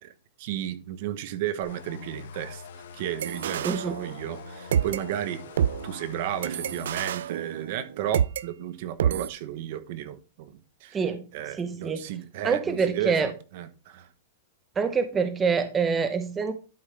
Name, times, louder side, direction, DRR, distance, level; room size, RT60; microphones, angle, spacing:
voice 1, 0.0-5.4 5.8-14.1, right 11 dB, 55° right, 0.9 m, -34 dB
sound 1, 1.6-7.1, left 5 dB, 80° left, 1.3 m, -43 dB
sound 2, 3.2-4.4 4.7-8.4 9.0-9.3, right 9 dB, 80° right, 0.4 m, -28 dB
voice 2, 3.6-4.0 10.9-11.2 11.6-12.0 12.4-13.3 14.8-16.5, right 5 dB, 15° right, 0.8 m, -25 dB
11.5 x 5.5 x 3.3 m
supercardioid pair, 145°, 0 cm